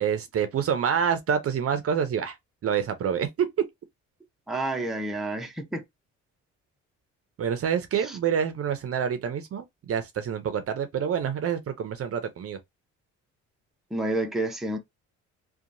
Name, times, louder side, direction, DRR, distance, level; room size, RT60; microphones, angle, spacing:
voice 1, 0.0-2.4 2.6-3.5 7.4-12.6, right 7 dB, 50° right, 0.6 m, -27 dB
voice 2, 4.5-5.8 8.0-8.2 13.9-14.8, right 2 dB, ahead, 0.6 m, -29 dB
2.8 x 2.3 x 2.5 m
cardioid pair, 90°, 30 cm